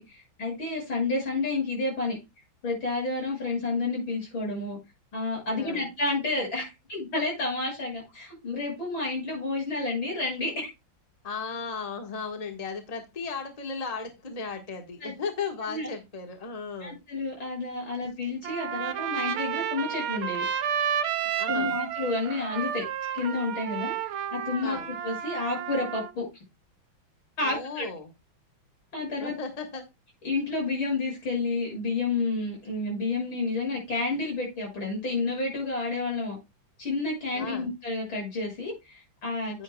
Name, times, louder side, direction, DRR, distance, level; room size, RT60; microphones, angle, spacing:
voice 1, 0.0-2.2 2.6-4.8 5.1-10.7 15.0-15.1 15.7-15.9 16.8-20.5 21.5-22.9 23.1-24.8 25.0-26.2 27.4-27.8 28.9-29.3 30.2-36.4 36.8-39.6, left 3 dB, 85° left, -2 dB, 7.7 m, -30 dB
voice 2, 5.5-5.9 11.2-17.0 21.4-21.7 24.6-24.9 27.4-28.1 29.2-29.8 37.3-37.7 39.5-39.6, left 5 dB, 20° left, 4 dB, 1.4 m, -36 dB
Trumpet, 18.4-26.1, right 9 dB, 85° right, 1.7 m, -31 dB
9.7 x 9.5 x 2.3 m, 0.23 s
omnidirectional pair, 2.2 m